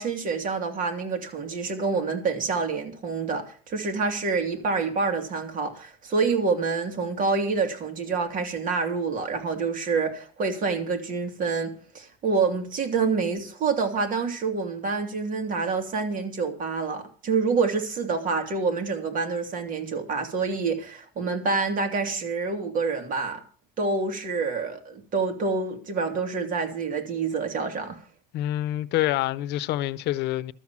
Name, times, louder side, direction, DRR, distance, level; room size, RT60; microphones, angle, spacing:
voice 1, 0.0-23.4 23.8-28.0, right 4 dB, 55° right, 2.7 m, -27 dB
voice 2, 28.3-30.5, left 14 dB, 85° left, 0.7 m, -26 dB
12.5 x 7.3 x 7.3 m
cardioid pair, 110°, 17 cm